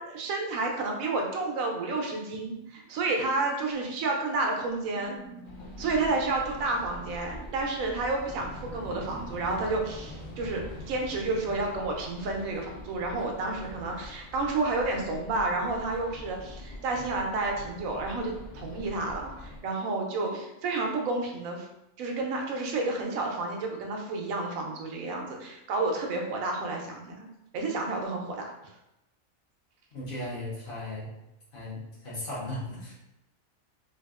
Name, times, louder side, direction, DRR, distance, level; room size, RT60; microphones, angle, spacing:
voice 1, 0.0-5.2 5.8-21.7 22.0-27.3 27.5-28.5, right 3 dB, 85° right, 1 dB, 1.0 m, -30 dB
sound 1, 2.3-9.8, right 1 dB, 25° right, 0.5 m, -51 dB
sound 2, 5.4-19.6, left 1 dB, 70° left, 0.5 m, -45 dB
sound 3, 8.2-12.4, left 1 dB, 20° left, 0.7 m, -45 dB
voice 2, 29.9-31.1 31.5-32.9, left 1 dB, 50° left, -6 dB, 0.8 m, -36 dB
3.4 x 2.3 x 2.3 m, 0.88 s
omnidirectional pair, 1.4 m